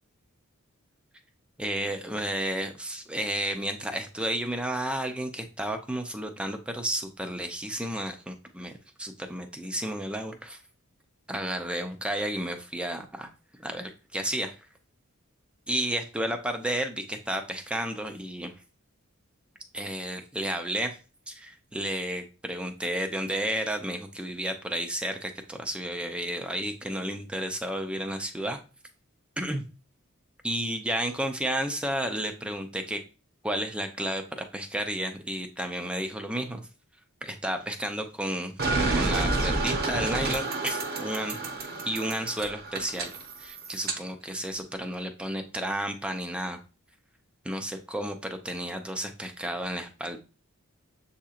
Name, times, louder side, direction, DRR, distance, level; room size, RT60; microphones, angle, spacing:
voice 1, 1.6-8.7 9.0-10.6 11.3-13.3 13.6-14.5 15.7-18.5 19.7-21.0 21.3-28.6 29.4-29.6 30.4-33.0 33.4-36.6 37.2-41.4 41.9-43.1 43.4-46.6 47.4-50.2, right 1 dB, 5° right, 6 dB, 0.4 m, -32 dB
sound 1, 38.6-44.0, right 3 dB, 45° right, 0.7 m, -29 dB
7.1 x 2.8 x 2.4 m, 0.34 s
head